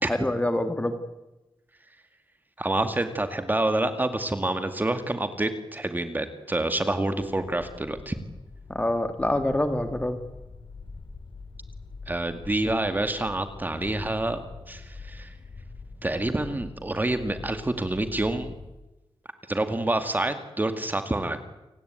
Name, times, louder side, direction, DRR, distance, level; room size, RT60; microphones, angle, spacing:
voice 1, 0.1-0.9 8.7-10.2, left 1 dB, 15° left, 8 dB, 2.0 m, -26 dB
voice 2, 2.6-8.2 12.1-15.3 16.0-18.5 19.5-21.4, right 2 dB, 20° right, 9 dB, 2.2 m, -27 dB
sound 1, 7.2-18.7, left 3 dB, 70° left, 4.6 m, -44 dB
29.0 x 18.0 x 9.5 m, 0.99 s
wide cardioid pair, 145°, 9 cm